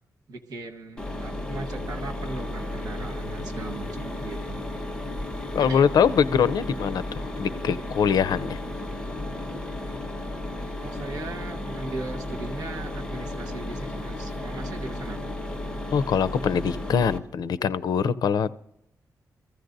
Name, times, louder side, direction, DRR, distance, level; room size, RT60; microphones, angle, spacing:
voice 1, 0.3-4.6 5.6-5.9 10.8-15.3, right 2 dB, 80° right, 3 dB, 1.4 m, -38 dB
Mechanisms, 1.0-17.2, left 1 dB, 15° left, 1.2 m, -34 dB
voice 2, 5.5-8.6 15.9-18.5, left 7 dB, 90° left, 15 dB, 0.5 m, -23 dB
23.5 x 14.5 x 2.6 m, 0.78 s
wide cardioid pair, 125°, 7 cm